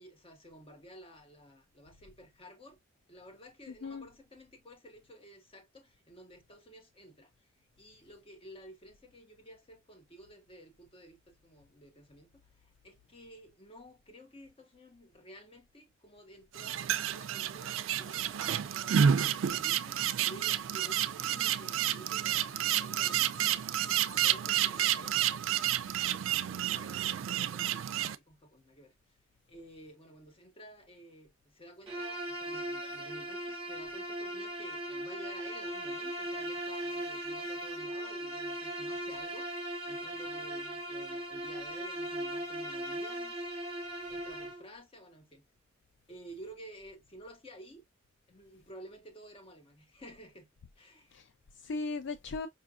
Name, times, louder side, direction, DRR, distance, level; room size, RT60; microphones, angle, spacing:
voice 1, 0.0-2.8 3.1-7.5 7.8-23.7 24.0-25.1 26.0-28.9 29.5-43.3 44.1-45.5 46.1-47.9 48.3-50.5 50.8-51.2, right 1 dB, 30° left, 0.9 m, -53 dB
voice 2, 3.7-4.1 51.1-52.5, left 3 dB, 65° left, 0.4 m, -38 dB
sound 1, 16.5-28.2, right 9 dB, 80° right, 0.3 m, -30 dB
Bowed string instrument, 31.9-44.6, right 1 dB, 30° right, 1.0 m, -38 dB
5.1 x 2.4 x 2.4 m
head